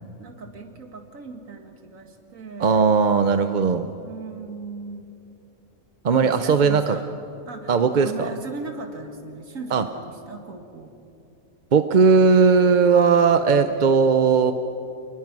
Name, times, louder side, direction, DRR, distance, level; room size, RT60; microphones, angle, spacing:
voice 1, 0.2-2.9 4.0-5.2 6.1-10.9, right 4 dB, 75° right, 5 dB, 2.2 m, -38 dB
voice 2, 2.6-3.9 6.0-7.0 7.7-8.3 9.7-9.8 11.7-14.5, right 5 dB, 45° right, 9 dB, 0.7 m, -18 dB
28.5 x 20.0 x 6.1 m, 2.6 s
omnidirectional pair, 1.4 m